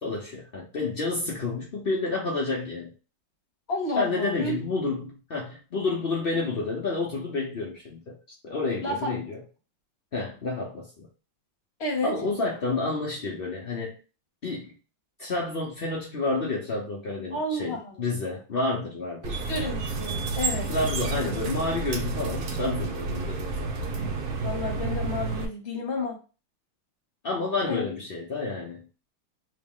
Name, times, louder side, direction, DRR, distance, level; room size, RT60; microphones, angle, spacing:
voice 1, 0.0-2.9 4.0-8.2 8.4-9.4 10.1-11.1 12.0-14.0 14.4-14.8 15.2-19.4 20.7-23.7 27.2-28.9, left 3 dB, 80° left, -2 dB, 0.5 m, -30 dB
voice 2, 3.7-4.6 8.8-9.1 11.8-12.1 17.3-18.1 19.2-20.7 23.9-26.2 27.7-27.9, left 2 dB, 40° left, 0 dB, 1.1 m, -31 dB
sound 1, 19.2-25.5, right 3 dB, 65° right, 1.1 m, -30 dB
3.1 x 3.0 x 3.6 m, 0.33 s
omnidirectional pair, 2.1 m